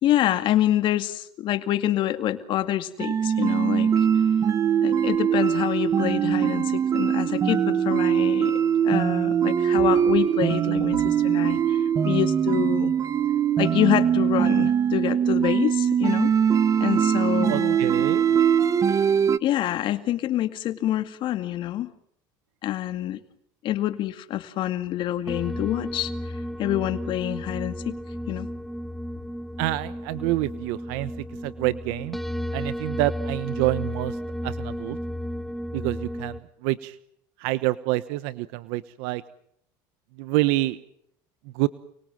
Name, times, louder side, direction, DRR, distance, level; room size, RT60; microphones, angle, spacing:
voice 1, 0.0-3.9 4.8-12.9 13.6-16.3 16.8-17.8 19.4-21.9 22.6-23.2 23.6-26.1 26.6-28.0 28.3-28.5, left 13 dB, 55° left, 10 dB, 2.2 m, -26 dB
sound 1, 3.0-19.4, right 8 dB, 30° right, 1.3 m, -22 dB
voice 2, 17.5-18.2 29.6-32.2 32.5-34.2 34.4-35.0 35.7-37.0 37.4-39.2 40.2-40.8 41.5-41.7, right 18 dB, 75° right, 14 dB, 1.2 m, -27 dB
sound 2, 25.3-36.4, equal, ahead, 1.7 m, -33 dB
29.5 x 22.5 x 7.7 m, 0.70 s
supercardioid pair, 115°, 10 cm